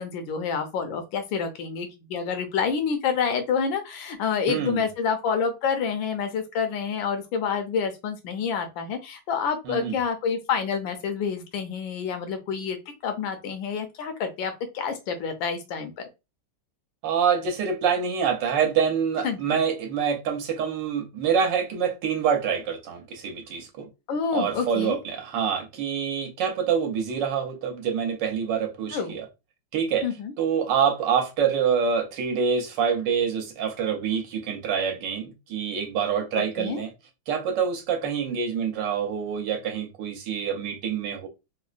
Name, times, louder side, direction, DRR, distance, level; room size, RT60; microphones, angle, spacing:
voice 1, 0.0-12.8 13.0-15.9 19.2-19.6 24.1-25.0 28.9-29.2 30.0-30.3 36.3-36.8, left 6 dB, 80° left, 1.4 m, -28 dB
voice 2, 4.5-4.8 9.7-10.0 17.0-23.9 24.3-29.2 29.7-30.0 30.4-36.9 37.3-41.3, right 7 dB, 70° right, 1.3 m, -26 dB
3.6 x 2.1 x 2.4 m
omnidirectional pair, 2.1 m